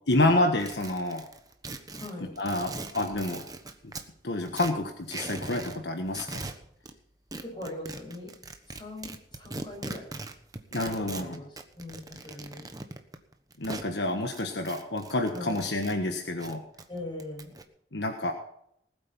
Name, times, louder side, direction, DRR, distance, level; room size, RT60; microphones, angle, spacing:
voice 1, 0.1-1.2 2.4-3.4 4.2-6.4 10.7-11.4 13.6-16.6 17.9-18.3, left 2 dB, 75° left, 4 dB, 1.5 m, -28 dB
sound 1, 0.6-4.1 4.4-5.8 6.1-6.9 7.3-13.9 14.3-16.0 16.3-17.6, right 2 dB, 20° right, 1.2 m, -40 dB
voice 2, 2.0-2.3 7.4-8.3 8.7-10.1 11.1-12.6 15.3-15.6 16.9-17.5, left 1 dB, 25° left, 0 dB, 5.9 m, -41 dB
19.5 x 8.6 x 5.5 m, 0.73 s
head